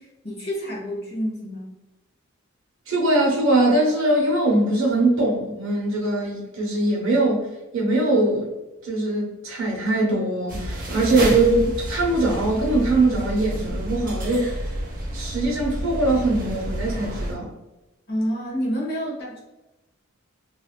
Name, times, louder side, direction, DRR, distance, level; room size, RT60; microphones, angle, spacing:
voice 1, 0.0-1.7 18.1-19.4, equal, 50° left, -4 dB, 1.0 m, -28 dB
voice 2, 2.9-7.5 7.7-8.5 8.8-14.5 15.1-17.5, right 2 dB, 65° right, -2 dB, 0.8 m, -21 dB
sound 1, 10.5-17.3, right 1 dB, 40° right, 0.6 m, -30 dB
2.5 x 2.2 x 2.3 m, 1.0 s
head